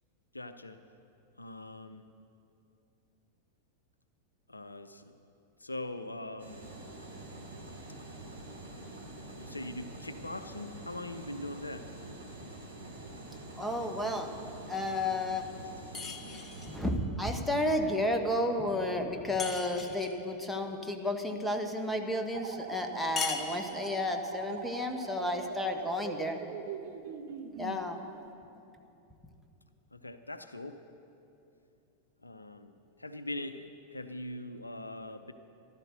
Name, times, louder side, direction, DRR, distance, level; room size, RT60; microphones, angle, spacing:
voice 1, 0.3-0.8 1.4-2.0 4.5-5.1 5.6-6.6 9.4-11.9 29.9-30.8 32.2-32.7 33.0-35.3, left 1 dB, 80° left, 10 dB, 0.6 m, -41 dB
sound 1, 6.4-16.8, right 2 dB, 80° right, 3.0 m, -46 dB
voice 2, 13.6-14.3 14.7-15.5 16.6-26.4 27.6-28.0, left 1 dB, ahead, 3 dB, 1.4 m, -32 dB
sound 2, 15.9-16.8 19.4-20.2 23.2-24.1, left 5 dB, 20° left, 1.3 m, -38 dB
sound 3, 22.3-27.8, right 8 dB, 55° right, 0.9 m, -42 dB
14.5 x 12.0 x 6.6 m, 2.7 s
figure-of-eight pair, 90°, 0 cm